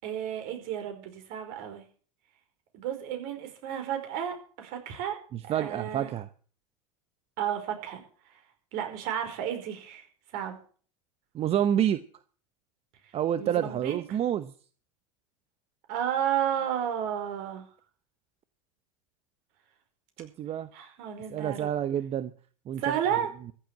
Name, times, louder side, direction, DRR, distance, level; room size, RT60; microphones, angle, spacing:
voice 1, 0.0-1.8 2.7-5.2 5.4-6.1 7.4-8.0 8.7-10.0 10.3-10.6 13.4-13.9 15.9-17.7 20.7-21.7 22.8-23.3, right 9 dB, 55° right, 6 dB, 5.1 m, -32 dB
voice 2, 5.3-6.3 11.3-12.0 13.1-14.5 20.2-20.7 21.3-22.3 22.7-23.0, right 10 dB, 35° right, 13 dB, 0.9 m, -28 dB
15.0 x 7.9 x 8.7 m, 0.44 s
hypercardioid pair, 105°, 18 cm